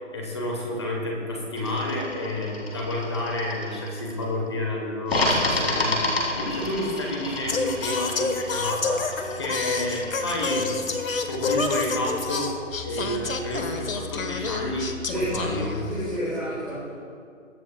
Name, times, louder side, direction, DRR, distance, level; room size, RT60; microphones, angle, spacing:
voice 1, 0.1-10.7 11.2-12.5 12.8-14.9 15.1-15.7, left 1 dB, 20° left, 0 dB, 1.1 m, -30 dB
sound 1, 1.6-4.2 5.1-11.2, left 1 dB, 50° left, 2.2 m, -30 dB
Singing, 7.5-16.2, left 4 dB, 85° left, 1.3 m, -29 dB
voice 2, 15.1-15.4 15.8-16.9, right 1 dB, ahead, -19 dB, 0.9 m, -30 dB
21.5 x 9.4 x 2.3 m, 2.2 s
hypercardioid pair, 175°, 39 cm